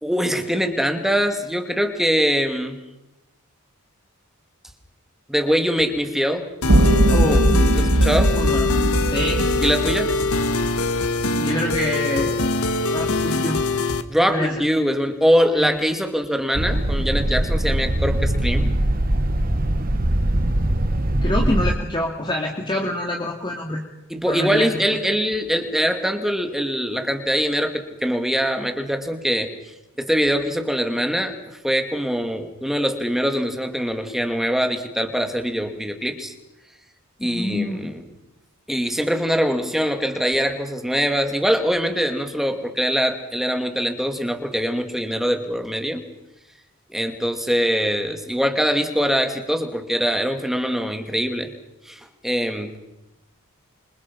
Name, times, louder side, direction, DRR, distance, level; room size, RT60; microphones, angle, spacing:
voice 1, 0.0-2.8 5.3-6.5 7.7-8.4 9.2-10.1 14.1-18.7 24.1-29.5 30.0-31.3 31.6-36.3 37.2-37.9 38.7-46.0 46.9-51.5 51.8-52.8, equal, ahead, 5 dB, 2.5 m, -23 dB
sound 1, 6.6-14.0, left 3 dB, 80° left, 1.8 m, -23 dB
sound 2, 6.7-11.0, right 1 dB, 70° right, 1.5 m, -19 dB
voice 2, 7.1-7.5 8.1-8.7 9.0-9.4 11.3-12.5 12.8-13.6 14.3-14.7 15.6-15.7 21.2-23.8 24.3-25.0 37.2-37.9, left 1 dB, 20° left, 1 dB, 2.5 m, -26 dB
sound 3, 16.5-21.7, right 1 dB, 40° right, 1.2 m, -21 dB
27.5 x 26.0 x 5.5 m, 0.95 s
head